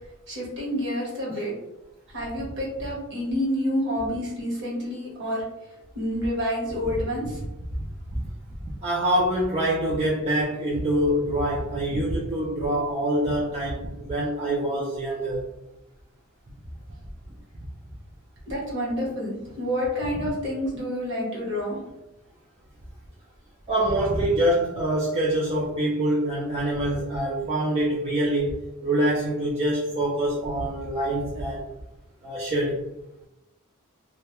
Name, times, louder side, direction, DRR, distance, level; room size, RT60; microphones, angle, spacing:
voice 1, 0.3-1.5 2.1-5.4 5.9-7.4 18.5-21.8, equal, 55° right, -4 dB, 1.0 m, -28 dB
voice 2, 8.8-15.4 23.7-31.7 32.2-32.8, right 1 dB, 30° right, -6 dB, 0.4 m, -25 dB
2.2 x 2.1 x 2.8 m, 0.90 s
head